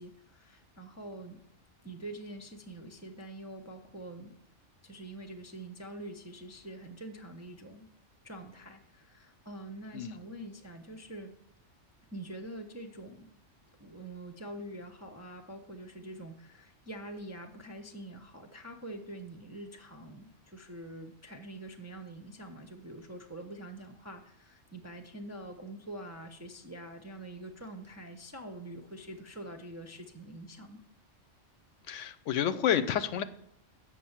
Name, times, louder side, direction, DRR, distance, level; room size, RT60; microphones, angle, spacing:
voice 1, 0.0-1.4 1.8-4.3 4.8-7.9 8.2-11.3 12.1-13.3 13.8-30.8, right 1 dB, 25° right, 4 dB, 0.3 m, -45 dB
voice 2, 31.9-33.2, left 9 dB, 80° left, 12 dB, 0.9 m, -29 dB
7.4 x 5.4 x 7.1 m, 0.76 s
omnidirectional pair, 1.3 m